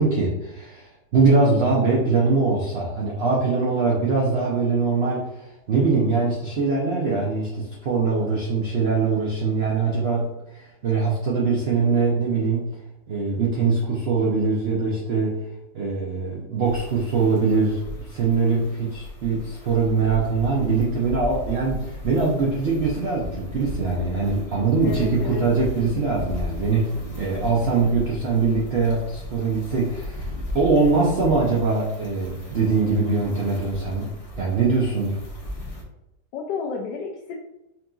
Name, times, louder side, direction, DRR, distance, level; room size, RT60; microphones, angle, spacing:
voice 1, 0.0-12.7 13.1-15.4 15.7-35.2, right 4 dB, 60° right, -4 dB, 0.6 m, -22 dB
sound 1, 16.6-35.8, left 2 dB, 40° left, 0.5 m, -37 dB
voice 2, 24.8-25.4 36.3-37.4, left 5 dB, 85° left, 0 dB, 1.2 m, -31 dB
5.6 x 2.6 x 2.3 m, 0.91 s
omnidirectional pair, 1.8 m